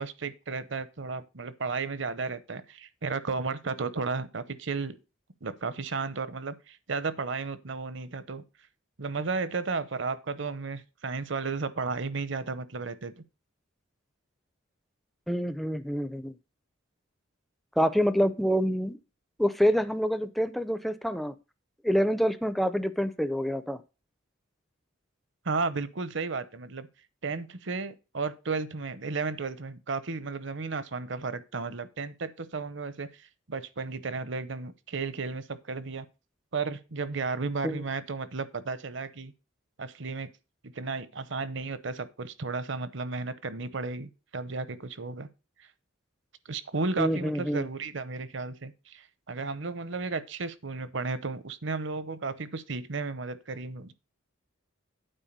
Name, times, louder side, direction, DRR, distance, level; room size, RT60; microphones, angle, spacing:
voice 1, 0.0-5.0 5.4-8.4 9.0-13.1 25.4-26.9 27.2-33.1 33.5-36.1 36.5-39.3 39.8-40.3 40.6-45.3 46.5-53.9, right 4 dB, 60° right, 0.8 m, -33 dB
voice 2, 15.3-16.3 17.8-19.0 19.4-21.3 21.8-23.8 37.6-37.8 47.0-47.7, equal, ahead, 0.5 m, -26 dB
9.0 x 4.4 x 6.7 m
head